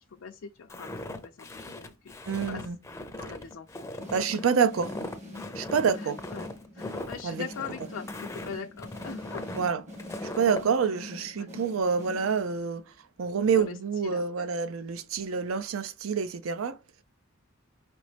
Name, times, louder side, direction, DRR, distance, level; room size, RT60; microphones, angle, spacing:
voice 1, 0.1-0.9 1.2-2.6 3.2-3.9 4.3-4.7 6.0-6.5 6.7-9.5 11.4-11.5 13.5-13.8 14.0-14.5 15.3-15.5, left 6 dB, 80° left, 0.5 m, -41 dB
Walk footsteps, 0.7-10.7, left 1 dB, 15° left, 0.5 m, -39 dB
voice 2, 2.3-2.8 4.1-4.9 5.6-6.2 7.2-7.5 9.6-9.8 10.2-12.9 13.2-16.8, right 6 dB, 80° right, 0.4 m, -27 dB
sound 1, 4.0-12.8, left 1 dB, 35° right, 1.1 m, -44 dB
5.1 x 3.0 x 3.3 m
head